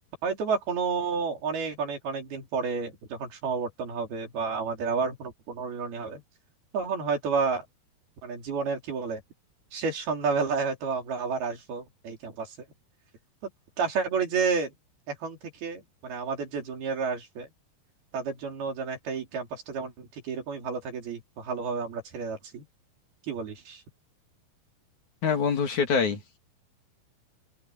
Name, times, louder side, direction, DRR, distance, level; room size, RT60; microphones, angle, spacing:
voice 1, 0.2-6.2 6.7-7.6 8.2-9.2 9.7-12.6 13.8-14.7 15.1-17.5 18.1-22.7 23.3-23.8, right 5 dB, 80° right, 5.9 m, -30 dB
voice 2, 25.2-26.4, left 6 dB, 55° left, 3.7 m, -25 dB
open air
omnidirectional pair, 4.3 m